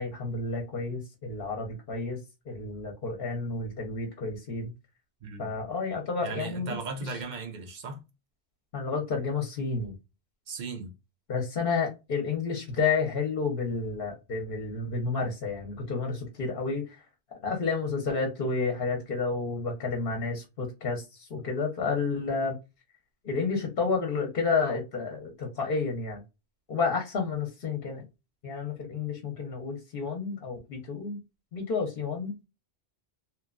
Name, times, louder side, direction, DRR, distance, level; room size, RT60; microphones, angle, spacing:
voice 1, 0.0-2.2 2.5-4.7 5.4-7.2 8.7-10.0 11.3-17.0 17.4-22.6 23.2-26.2 26.7-28.0 28.4-31.2 31.5-32.3, left 4 dB, 60° left, 0.9 m, -30 dB
voice 2, 6.2-8.0 10.5-10.9, right 4 dB, 50° right, 0.7 m, -37 dB
2.8 x 2.1 x 2.4 m
omnidirectional pair, 1.1 m